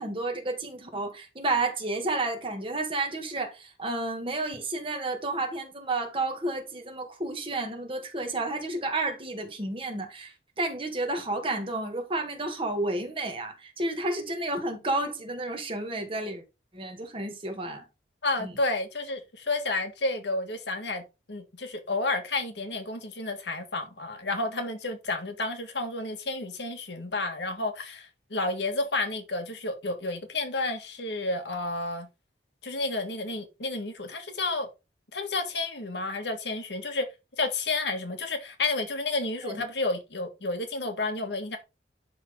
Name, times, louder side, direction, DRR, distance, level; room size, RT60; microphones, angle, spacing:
voice 1, 0.0-16.4 16.7-17.8 18.4-18.5 39.4-39.6, right 2 dB, 30° right, 1.9 m, -31 dB
voice 2, 18.2-21.0 21.3-32.1 32.6-34.7 35.1-37.1 37.4-41.6, left 2 dB, 80° left, 1.9 m, -31 dB
11.0 x 3.9 x 3.8 m
head